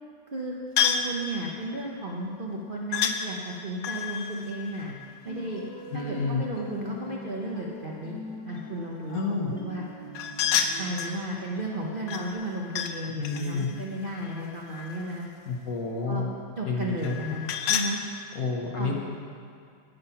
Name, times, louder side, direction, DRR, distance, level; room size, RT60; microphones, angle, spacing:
voice 1, 0.3-5.0 5.2-5.6 5.9-8.1 8.5-9.2 9.5-9.8 10.5-15.3 16.1-16.2 16.6-18.0 18.8-19.0, right 1 dB, 60° right, -2 dB, 0.5 m, -34 dB
sound 1, 0.8-1.2 2.9-3.2 3.8-5.6 10.1-11.2 12.1-13.0 13.2-15.1 17.0-17.9, left 8 dB, 70° left, 1.2 m, -29 dB
sound 2, 5.3-12.3, left 1 dB, 20° left, 0.7 m, -42 dB
voice 2, 5.9-6.4 9.1-9.5 13.2-13.7 15.4-16.3 16.6-17.3 18.3-19.0, left 4 dB, 50° left, 0 dB, 1.4 m, -29 dB
9.6 x 8.8 x 5.8 m, 2.3 s
omnidirectional pair, 2.3 m